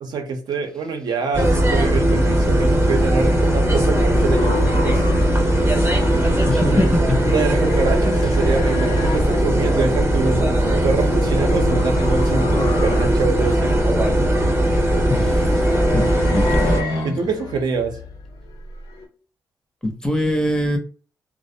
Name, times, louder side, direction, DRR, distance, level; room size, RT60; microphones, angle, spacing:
voice 1, 0.0-5.2 6.6-6.9 7.3-10.5 10.8-13.8 17.0-18.0, right 4 dB, 70° right, 4 dB, 0.6 m, -25 dB
sound 1, 1.3-16.8, right 1 dB, 35° right, 0.7 m, -18 dB
sound 2, 2.3-19.1, left 3 dB, 85° left, 0.7 m, -33 dB
voice 2, 6.5-7.3 15.1-15.6 15.9-17.2 19.8-20.8, left 1 dB, 10° left, 5 dB, 0.5 m, -23 dB
2.3 x 2.0 x 2.6 m, 0.39 s
cardioid pair, 105°, 7 cm